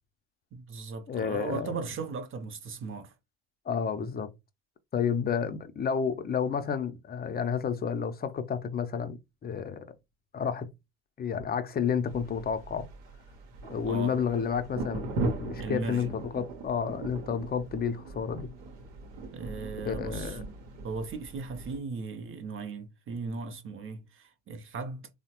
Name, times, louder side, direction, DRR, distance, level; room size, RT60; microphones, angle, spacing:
voice 1, 0.5-3.1 13.9-14.2 15.6-16.1 19.3-20.4 20.8-25.1, right 4 dB, 35° right, 0.7 m, -37 dB
voice 2, 1.1-1.8 3.7-4.3 4.9-9.9 10.3-10.7 11.2-12.9 13.6-18.5 19.9-20.4, left 7 dB, 30° left, 0.5 m, -31 dB
sound 1, 12.1-21.8, right 2 dB, 80° right, 0.9 m, -39 dB
3.1 x 2.1 x 2.9 m
hypercardioid pair, 70°, 34 cm